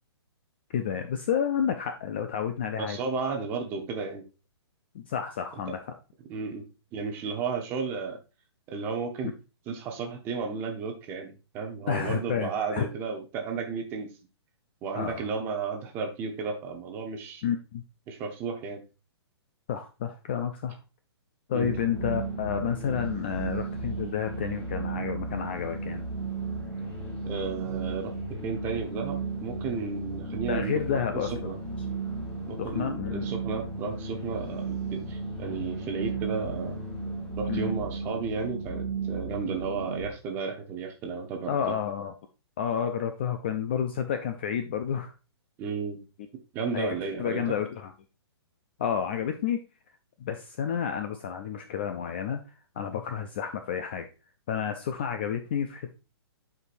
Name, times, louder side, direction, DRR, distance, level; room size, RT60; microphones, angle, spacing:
voice 1, 0.7-3.0 4.9-5.8 11.9-12.9 14.9-15.2 17.4-17.8 19.7-20.8 21.5-26.1 30.5-31.5 32.6-33.3 37.5-37.7 41.5-42.1 42.6-45.1 46.7-46.9 47.2-47.9 48.8-49.6 50.2-52.4 52.8-54.1 54.5-55.9, left 8 dB, 25° left, 7 dB, 0.3 m, -30 dB
voice 2, 2.8-4.2 5.7-5.8 6.3-6.6 6.9-8.2 8.7-9.3 9.7-14.1 14.8-17.4 18.1-18.8 21.5-21.8 27.3-31.6 32.5-36.8 37.4-41.7 45.6-46.0 46.5-47.4, right 5 dB, 15° right, 4 dB, 0.8 m, -33 dB
sound 1, 21.6-40.1, right 4 dB, 10° left, 1.7 m, -34 dB
9.8 x 4.6 x 2.5 m, 0.30 s
hypercardioid pair, 165°, 14 cm